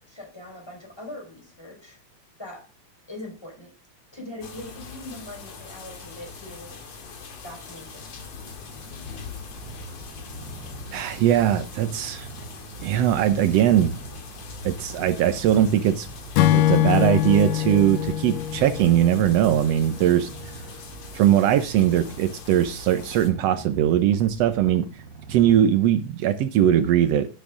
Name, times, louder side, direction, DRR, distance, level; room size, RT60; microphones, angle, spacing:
voice 1, 0.0-2.0 2.4-2.6 3.1-3.7 4.1-6.8 7.4-8.2, left 1 dB, 5° left, 1 dB, 4.8 m, -41 dB
sound 1, 4.4-23.3, left 5 dB, 55° left, 3.0 m, -41 dB
Purr, 9.5-25.7, right 4 dB, 60° right, 3.8 m, -43 dB
voice 2, 10.9-12.3 12.8-14.0 14.6-16.1 16.5-20.3 21.1-24.9 25.3-27.3, right 11 dB, 90° right, 10 dB, 1.4 m, -20 dB
Acoustic guitar / Strum, 16.4-19.8, left 12 dB, 75° left, 2.2 m, -23 dB
12.0 x 11.5 x 3.8 m, 0.33 s
omnidirectional pair, 3.9 m